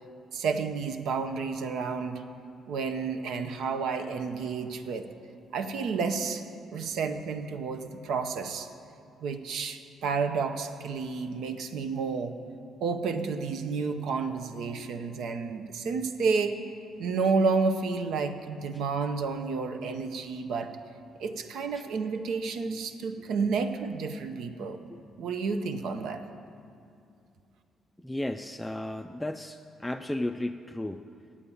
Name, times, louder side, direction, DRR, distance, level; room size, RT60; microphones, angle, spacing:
voice 1, 0.3-2.2 2.7-5.1 5.5-6.4 6.7-8.7 9.2-12.3 12.8-16.6 17.0-20.7 21.2-24.8 25.2-26.2, right 4 dB, 80° right, 7 dB, 0.7 m, -30 dB
voice 2, 28.0-31.0, left 1 dB, 10° left, 5 dB, 0.3 m, -34 dB
8.6 x 8.4 x 7.0 m, 2.5 s
cardioid pair, 90°, 0 cm